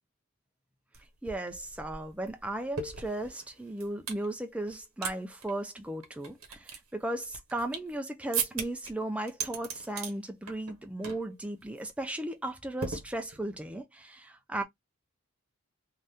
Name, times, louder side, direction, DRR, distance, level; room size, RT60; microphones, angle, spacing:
sound 1, 0.9-1.0 1.3-4.2 4.7-5.1 5.4-5.5 6.0-7.9 8.3-8.9 9.3-10.1 10.5-10.8 11.0-11.3 11.6-11.8 12.8-13.6, right 6 dB, 70° right, 0.9 m, -37 dB
voice 1, 1.2-14.6, right 1 dB, 5° right, 0.4 m, -36 dB
2.6 x 2.2 x 3.4 m
head